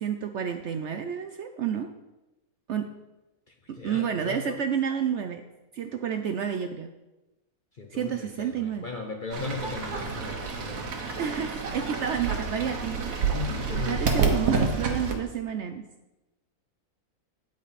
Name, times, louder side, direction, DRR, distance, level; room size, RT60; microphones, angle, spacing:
voice 1, 0.0-1.9 2.7-2.8 3.8-5.4 5.7-6.9 7.9-8.9 11.2-13.2 13.9-15.8, right 8 dB, 65° right, 7 dB, 0.7 m, -30 dB
voice 2, 3.5-4.6 7.8-11.1 13.3-14.1, left 3 dB, 45° left, 3 dB, 0.7 m, -37 dB
Fowl / Bird, 9.3-15.1, right 4 dB, 90° right, 1.7 m, -28 dB
8.7 x 8.4 x 4.1 m, 1.0 s
omnidirectional pair, 1.6 m